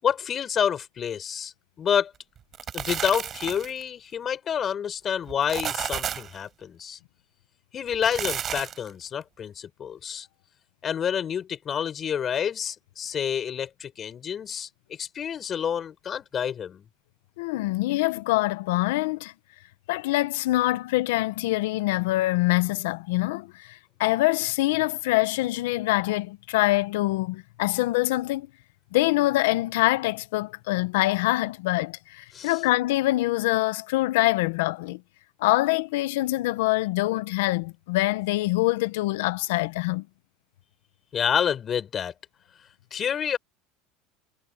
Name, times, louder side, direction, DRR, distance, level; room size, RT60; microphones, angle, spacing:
voice 1, 0.0-1.5 1.8-2.1 2.7-7.0 7.7-10.3 10.8-14.7 15.0-16.8 32.3-32.6 41.1-42.1 42.9-43.4, left 8 dB, 35° left, 5.1 m, -28 dB
sound 1, 2.4-3.8 5.3-6.4 7.9-8.9, right 9 dB, 35° right, 4.9 m, -32 dB
voice 2, 17.4-19.3 19.9-28.5 28.9-35.0 35.4-40.0, left 19 dB, 85° left, 0.9 m, -25 dB
supercardioid pair, 120°, 0 cm